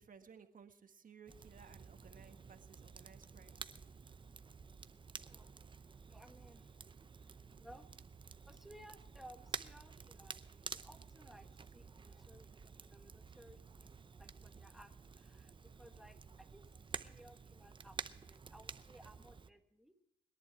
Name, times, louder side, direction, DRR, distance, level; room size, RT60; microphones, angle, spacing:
voice 1, 0.0-3.7, right 6 dB, 45° right, 7 dB, 1.5 m, -59 dB
Crackle, 1.3-19.5, right 5 dB, 25° right, 0.6 m, -51 dB
voice 2, 6.1-6.7 7.6-7.9 8.5-16.7 17.0-19.9, equal, ahead, 6 dB, 1.5 m, -60 dB
21.5 x 11.0 x 4.6 m, 0.95 s
cardioid pair, 90°, 20 cm